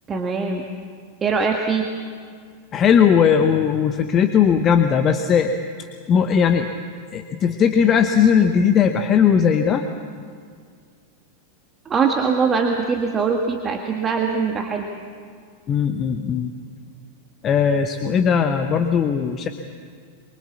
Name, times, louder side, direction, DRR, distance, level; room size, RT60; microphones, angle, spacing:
voice 1, 0.1-0.7 1.2-1.9 11.9-14.9, right 5 dB, 20° right, 3 dB, 1.8 m, -22 dB
voice 2, 2.7-5.5 6.1-6.7 7.1-9.8 15.7-16.5 17.4-19.5, left 7 dB, 30° left, 7 dB, 1.1 m, -18 dB
24.0 x 23.5 x 7.3 m, 2.1 s
figure-of-eight pair, 90°, 0 cm